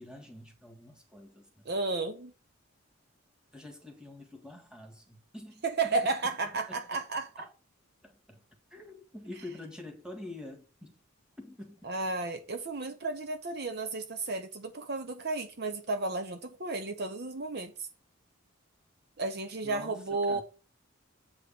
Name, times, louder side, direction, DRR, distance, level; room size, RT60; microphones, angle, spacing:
voice 1, 0.0-1.7 3.5-6.0 6.7-7.5 8.0-8.4 8.7-10.9 11.4-11.8 19.6-20.4, left 1 dB, 5° right, 1.7 m, -47 dB
voice 2, 1.7-2.3 5.6-7.3 11.8-17.9 19.2-20.4, right 3 dB, 50° right, 0.9 m, -33 dB
7.9 x 4.9 x 6.0 m
head